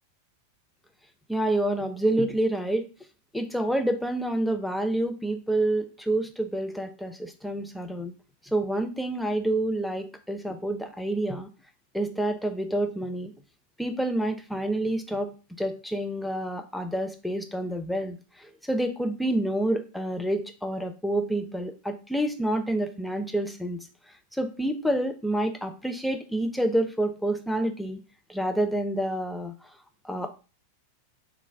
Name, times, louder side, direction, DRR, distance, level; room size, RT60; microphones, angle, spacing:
voice 1, 1.3-2.9 3.3-8.1 8.4-11.5 11.9-13.3 13.8-23.9 24.3-28.0 28.3-29.5 30.0-30.4, right 1 dB, 5° left, 6 dB, 0.4 m, -28 dB
2.5 x 2.0 x 3.3 m, 0.34 s
figure-of-eight pair, 90°, 0 cm